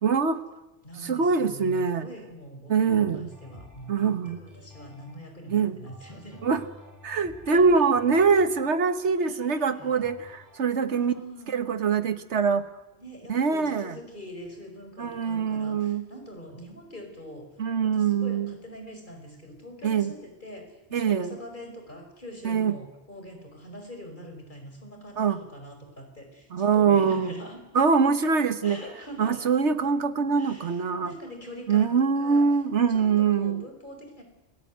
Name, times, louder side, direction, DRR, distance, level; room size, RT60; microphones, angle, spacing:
voice 1, 0.0-0.4 1.0-2.1 2.7-3.3 3.9-4.4 5.5-5.8 6.4-6.6 7.0-11.1 11.5-12.7 13.3-14.0 15.0-16.0 17.6-18.5 19.8-20.1 20.9-21.4 22.4-22.7 25.2-25.4 26.5-27.3 27.7-28.8 29.2-31.1 31.7-33.6, right 5 dB, 80° right, 11 dB, 1.7 m, -23 dB
voice 2, 0.8-6.4 7.5-7.9 9.2-10.0 10.9-11.5 13.0-17.5 17.8-27.6 28.6-29.4 30.4-32.5 32.9-34.2, equal, 45° left, 4 dB, 5.2 m, -43 dB
sound 1, 2.9-10.8, left 1 dB, 15° right, 4.7 m, -51 dB
28.5 x 17.0 x 9.5 m, 1.0 s
omnidirectional pair, 1.2 m